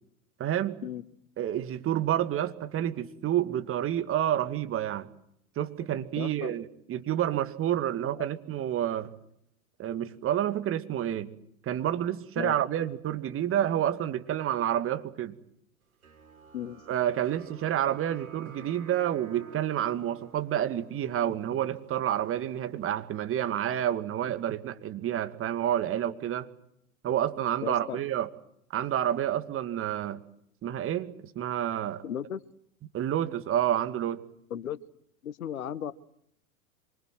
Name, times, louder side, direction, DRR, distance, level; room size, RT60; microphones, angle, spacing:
voice 1, 0.4-0.8 1.4-5.1 5.6-9.1 9.8-11.3 11.6-15.3 16.9-26.5 27.0-28.3 28.7-30.2 30.6-32.0 32.9-34.2, right 11 dB, 30° right, 2.3 m, -29 dB
voice 2, 6.2-6.5 8.2-8.3 12.4-12.6 16.5-16.8 27.6-28.0 32.0-32.4 34.5-34.8 35.2-35.9, left 9 dB, 75° left, 1.4 m, -35 dB
sound 1, 16.0-22.9, right 6 dB, 75° right, 4.5 m, -51 dB
26.5 x 25.0 x 7.7 m
figure-of-eight pair, 95°, 43 cm